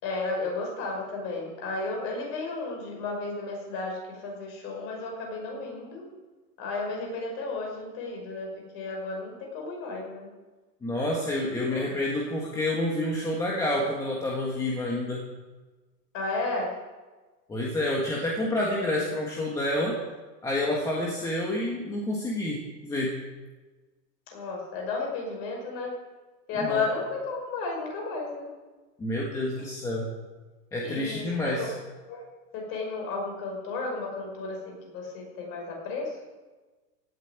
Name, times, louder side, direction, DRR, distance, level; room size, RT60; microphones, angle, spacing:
voice 1, 0.0-6.1 6.6-10.3 11.7-12.0 16.1-16.8 24.3-26.0 26.5-28.5 29.6-29.7 30.8-31.7 32.1-32.3 32.5-36.2, left 3 dB, 25° left, 1 dB, 5.6 m, -33 dB
voice 2, 10.8-15.2 17.5-20.0 20.4-23.2 26.6-26.8 29.0-30.1 30.7-31.7, left 1 dB, 5° left, -3 dB, 1.5 m, -28 dB
17.0 x 8.5 x 9.5 m, 1.3 s
hypercardioid pair, 165°, 50 cm